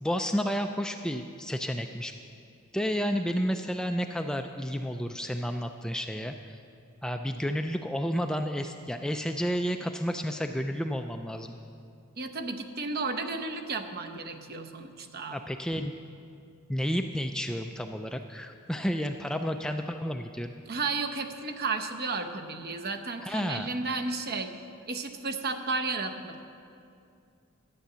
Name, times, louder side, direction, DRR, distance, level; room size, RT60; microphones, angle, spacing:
voice 1, 0.0-2.1 2.7-6.6 7.0-11.6 15.3-15.9 16.7-20.5 23.2-23.7, equal, 5° left, 5 dB, 0.3 m, -31 dB
voice 2, 12.2-15.4 20.7-24.5 24.9-26.4, right 4 dB, 45° right, 5 dB, 0.8 m, -33 dB
13.0 x 9.0 x 6.8 m, 2.5 s
head